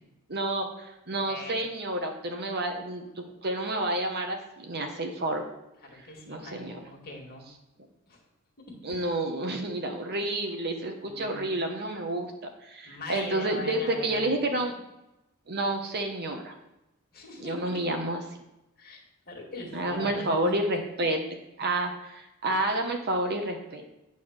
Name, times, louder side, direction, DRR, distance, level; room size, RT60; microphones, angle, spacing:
voice 1, 0.3-5.5 6.3-6.8 8.8-12.3 12.6-14.7 15.5-16.5 17.4-18.2 19.7-21.2 21.6-23.8, right 1 dB, 45° right, 4 dB, 1.1 m, -30 dB
voice 2, 1.2-1.6 5.8-7.5 8.1-8.2 8.9-9.0 11.0-11.5 12.8-14.4 17.1-17.9 18.8-19.0 19.3-20.5 22.5-22.6, left 1 dB, 45° left, 0 dB, 2.1 m, -41 dB
9.2 x 4.1 x 6.6 m, 0.93 s
head